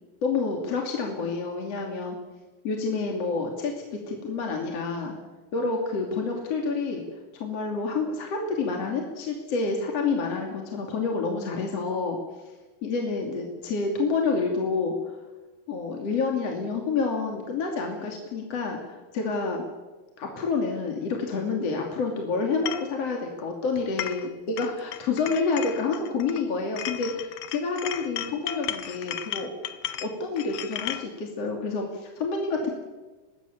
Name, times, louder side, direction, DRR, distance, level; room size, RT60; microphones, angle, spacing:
voice 1, 0.2-2.2 2.6-5.1 5.5-7.0 7.3-12.2 12.8-14.9 15.7-19.6 20.2-24.3 24.6-29.5 30.0-32.7, left 4 dB, 45° left, 1 dB, 3.3 m, -28 dB
sound 1, 22.7-22.9 23.8-24.3 24.6-26.4 26.8-31.1, left 11 dB, 65° left, 2.2 m, -35 dB
24.5 x 19.5 x 7.2 m, 1.2 s
omnidirectional pair, 4.3 m